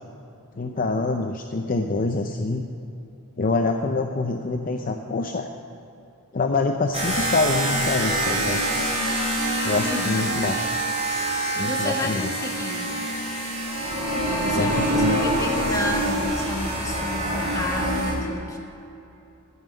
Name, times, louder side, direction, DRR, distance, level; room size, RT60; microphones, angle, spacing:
voice 1, 0.6-2.6 3.4-5.5 6.3-8.6 9.6-10.5 11.6-12.3 14.6-15.2, left 3 dB, 40° left, 4 dB, 0.6 m, -25 dB
sound 1, 6.9-18.1, right 1 dB, 30° right, 3.0 m, -25 dB
voice 2, 9.8-10.4 11.5-13.0 14.3-18.6, left 1 dB, 15° left, -1 dB, 1.5 m, -31 dB
13.5 x 5.6 x 9.2 m, 2.8 s
head